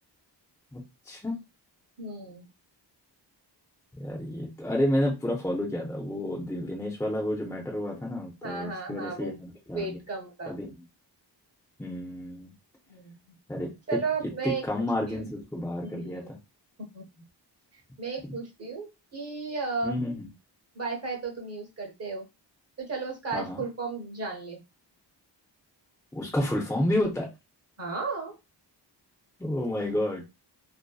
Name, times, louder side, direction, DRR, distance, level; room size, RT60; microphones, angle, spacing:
voice 1, 0.7-1.4 4.0-10.0 10.5-10.7 11.8-12.5 13.5-14.0 14.4-16.4 19.8-20.3 23.3-23.6 26.1-27.3 29.4-30.2, left 1 dB, 5° left, -1 dB, 0.4 m, -30 dB
voice 2, 2.0-2.5 8.4-9.3 9.7-10.6 12.9-13.4 13.9-15.2 15.8-16.3 16.8-17.1 17.7-18.9 19.1-20.0 20.7-22.3 22.8-24.6 27.8-28.3, right 4 dB, 35° right, 1 dB, 0.8 m, -34 dB
2.6 x 2.1 x 2.2 m, 0.25 s
wide cardioid pair, 125°, 44 cm